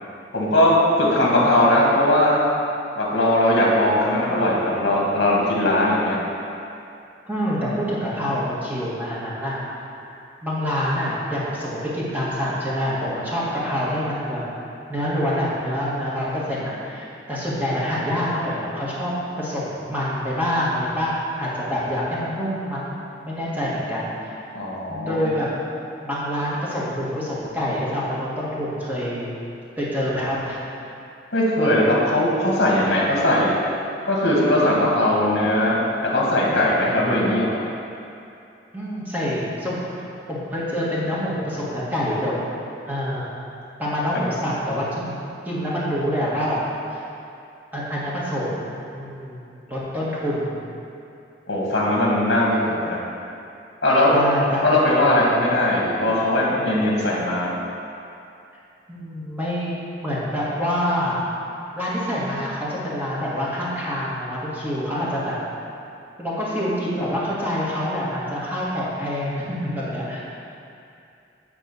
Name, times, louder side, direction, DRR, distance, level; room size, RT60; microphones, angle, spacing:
voice 1, 0.3-2.4 3.0-6.2 24.5-25.3 31.3-33.5 34.1-35.8 36.1-37.6 44.1-44.2 51.5-53.0 53.8-54.1 54.6-57.5, left 1 dB, 65° left, -4 dB, 1.8 m, -19 dB
voice 2, 7.3-9.6 10.4-14.4 14.9-22.9 23.2-24.4 24.9-25.5 26.0-29.3 29.8-30.6 38.7-39.9 40.3-42.3 42.9-43.3 43.8-46.6 47.7-49.4 49.7-50.6 54.1-54.8 58.9-59.7 60.0-61.2 61.8-65.3 66.2-70.3, equal, 10° right, -8 dB, 1.7 m, -26 dB
9.3 x 3.5 x 6.8 m, 2.6 s
head